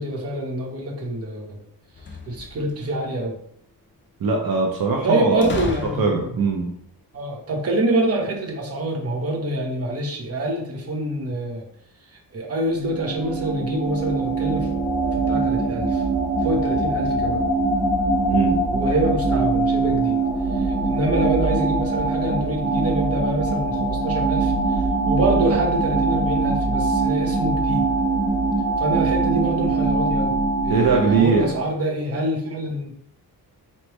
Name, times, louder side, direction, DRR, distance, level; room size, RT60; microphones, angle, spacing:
voice 1, 0.0-1.6 2.3-3.4 5.0-6.4 7.1-11.7 12.1-14.7 15.1-16.0 16.4-17.4 18.5-20.2 20.5-27.8 28.8-32.9, right 1 dB, 40° right, -1 dB, 1.0 m, -26 dB
sound 1, 1.9-2.9 5.4-6.5, left 3 dB, 30° left, 0.5 m, -32 dB
voice 2, 4.2-5.5 6.0-6.7 18.3-18.6 30.7-31.5, right 4 dB, 65° right, 0 dB, 0.8 m, -20 dB
sound 2, 12.7-31.7, right 3 dB, 85° right, 1.2 m, -22 dB
4.2 x 3.3 x 3.1 m, 0.68 s
wide cardioid pair, 120°, 38 cm